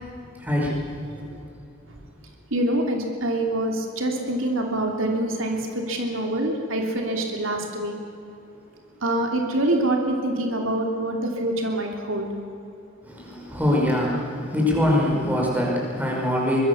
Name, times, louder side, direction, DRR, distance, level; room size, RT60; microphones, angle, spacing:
voice 1, 0.3-1.4 13.0-16.6, left 1 dB, 10° right, -2 dB, 5.5 m, -24 dB
voice 2, 2.5-7.9 9.0-12.3, right 1 dB, 80° right, 2 dB, 3.0 m, -25 dB
24.5 x 21.0 x 7.1 m, 2.8 s
head